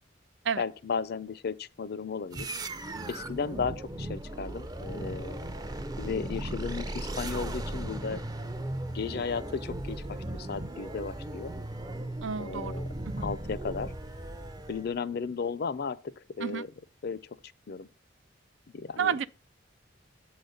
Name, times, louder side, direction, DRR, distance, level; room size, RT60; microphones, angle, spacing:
voice 1, 0.6-2.5 3.1-5.4 6.0-8.2 8.9-11.5 12.4-12.9 13.2-13.9 14.7-16.7 17.0-17.4 17.7-17.9 18.7-19.1, left 5 dB, 55° left, 0.5 m, -35 dB
sound 1, 2.3-15.0, right 1 dB, 20° right, 0.5 m, -37 dB
voice 2, 12.2-12.7 13.1-13.2 16.4-16.6 19.0-19.3, right 7 dB, 75° right, 0.5 m, -30 dB
8.3 x 4.0 x 6.5 m
head